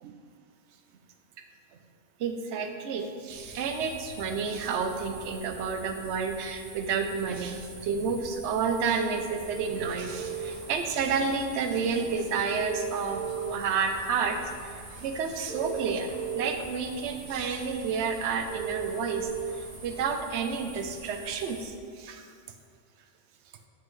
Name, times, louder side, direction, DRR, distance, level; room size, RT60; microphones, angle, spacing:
voice 1, 2.2-19.3 19.6-22.3, right 5 dB, 70° right, 6 dB, 0.9 m, -30 dB
sound 1, 3.3-21.7, right 2 dB, 90° right, 1.4 m, -46 dB
sound 2, 9.4-20.0, right 6 dB, 30° left, 1.5 m, -38 dB
7.5 x 5.7 x 3.2 m, 2.2 s
omnidirectional pair, 1.3 m